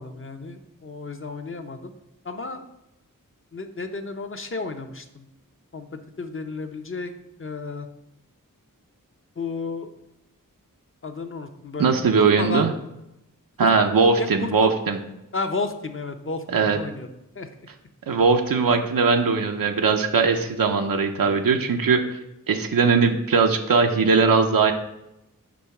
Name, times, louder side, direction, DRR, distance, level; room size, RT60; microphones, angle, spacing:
voice 1, 0.0-1.9 2.2-2.6 3.5-5.3 5.7-7.1 7.4-7.9 9.4-9.9 11.0-11.9 12.2-12.7 13.6-13.7 14.2-14.7 15.3-17.1 17.4-17.7, left 3 dB, 40° left, 6 dB, 0.6 m, -32 dB
voice 2, 11.8-12.7 13.6-15.0 16.5-16.8 18.1-22.2 22.5-24.7, right 4 dB, 90° right, 5 dB, 0.5 m, -20 dB
6.1 x 3.1 x 5.8 m, 0.88 s
wide cardioid pair, 60°, 33 cm